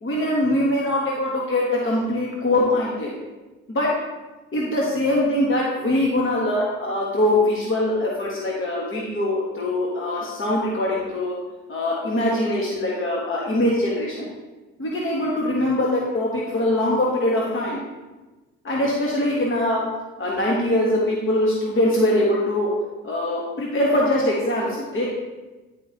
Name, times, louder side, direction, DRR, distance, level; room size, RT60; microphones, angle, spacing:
voice 1, 0.0-3.1 3.7-3.9 4.5-11.3 11.7-14.3 14.8-17.8 18.6-19.8 20.2-22.7 23.0-25.1, left 1 dB, 30° left, -4 dB, 1.5 m, -22 dB
10.0 x 5.0 x 2.9 m, 1.2 s
figure-of-eight pair, 50°, 40 cm